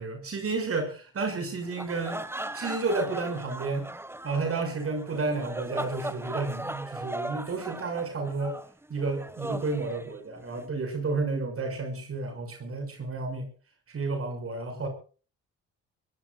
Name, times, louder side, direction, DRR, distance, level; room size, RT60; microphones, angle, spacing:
voice 1, 0.0-2.2 2.5-3.9 4.2-8.6 8.9-13.5 13.9-14.9, right 3 dB, 50° right, 6 dB, 6.4 m, -31 dB
sound 1, 1.6-10.6, right 1 dB, 10° right, 1.6 m, -38 dB
23.5 x 22.5 x 2.5 m, 0.38 s
cardioid pair, 90°, 30 cm